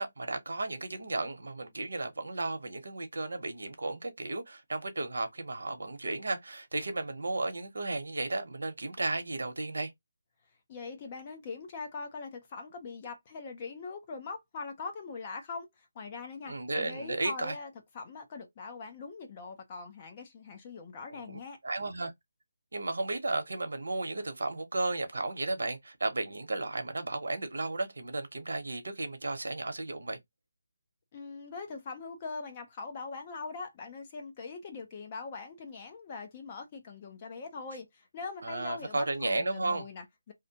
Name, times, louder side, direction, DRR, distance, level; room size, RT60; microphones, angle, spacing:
voice 1, 0.0-9.9 16.5-17.6 21.1-22.1 22.7-30.2 38.4-39.8, right 2 dB, 80° right, 0.8 m, -34 dB
voice 2, 10.7-21.6 31.1-40.3, left 4 dB, 20° left, 0.4 m, -42 dB
2.6 x 2.1 x 2.7 m
hypercardioid pair, 180°, 0 cm